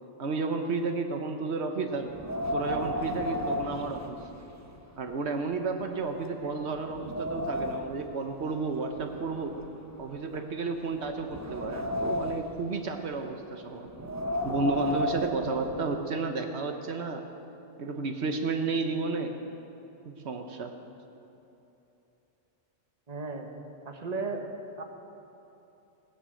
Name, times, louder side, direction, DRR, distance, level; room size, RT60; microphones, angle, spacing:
voice 1, 0.2-2.1 2.5-4.2 5.0-9.6 10.0-13.9 14.4-17.2 17.8-19.4 20.1-20.7, right 3 dB, 75° right, 5 dB, 1.2 m, -32 dB
Wind, 2.1-4.7 5.1-5.2 5.9-6.0 6.4-8.1 8.9-10.4 11.0-12.6 13.9-16.0, left 1 dB, 15° right, 0.8 m, -33 dB
voice 2, 6.4-6.7 23.1-23.5 23.8-24.5 24.8-24.9, right 4 dB, 35° right, 3 dB, 1.3 m, -35 dB
17.5 x 10.0 x 7.6 m, 3.0 s
omnidirectional pair, 1.1 m